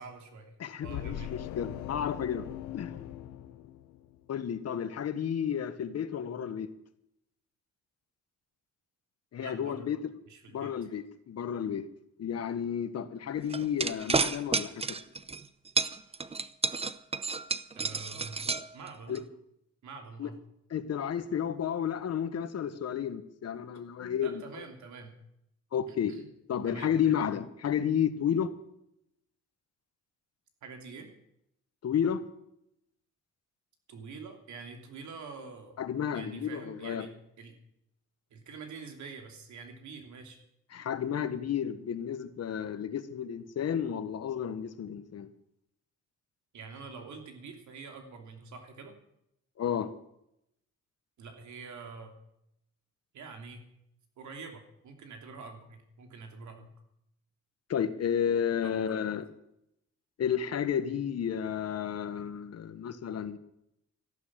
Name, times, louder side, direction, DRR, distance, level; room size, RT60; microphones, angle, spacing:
voice 1, 0.0-0.5 0.8-1.3 9.4-9.9 10.3-10.7 17.7-18.4 18.7-19.2 19.8-20.4 24.2-25.2 25.9-26.3 26.6-26.9 30.6-31.1 33.9-35.8 36.1-37.1 37.4-37.6 38.3-40.4 46.5-48.9 51.2-52.1 53.1-53.6 54.2-56.7 58.6-59.1, right 4 dB, 70° right, 3.1 m, -46 dB
voice 2, 0.6-2.5 2.7-3.0 4.3-6.7 9.3-10.0 10.5-11.8 12.2-15.0 19.1-19.2 20.2-20.3 20.7-24.4 25.7-26.1 26.5-28.5 31.8-32.2 35.8-37.1 40.7-45.3 49.6-49.9 57.7-59.3 60.2-63.4, left 8 dB, 55° left, 1.4 m, -32 dB
sound 1, 0.8-4.3, left 13 dB, 90° left, 0.8 m, -40 dB
sound 2, 13.5-15.4 15.8-19.2, right 4 dB, 20° right, 0.7 m, -30 dB
14.0 x 11.5 x 7.5 m
cardioid pair, 90°, 30 cm